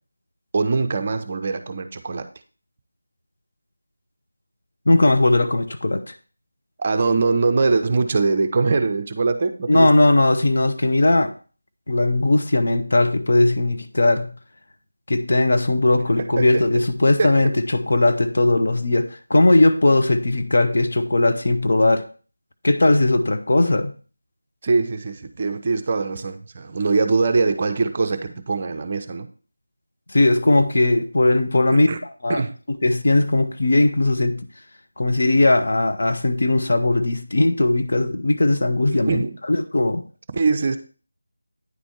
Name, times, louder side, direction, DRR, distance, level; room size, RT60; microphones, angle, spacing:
voice 1, 0.5-2.3 6.8-9.9 16.2-16.6 17.2-17.5 24.6-29.3 31.7-32.0 32.3-32.5 39.1-39.4 40.3-40.8, right 4 dB, 30° right, 8 dB, 0.6 m, -22 dB
voice 2, 4.9-6.1 9.7-11.3 11.9-14.3 15.1-22.1 22.6-23.9 30.1-31.9 32.2-32.4 32.7-34.5 35.0-40.0, left 2 dB, 50° left, 6 dB, 0.8 m, -18 dB
9.5 x 4.3 x 4.5 m, 0.39 s
figure-of-eight pair, 165°, 0 cm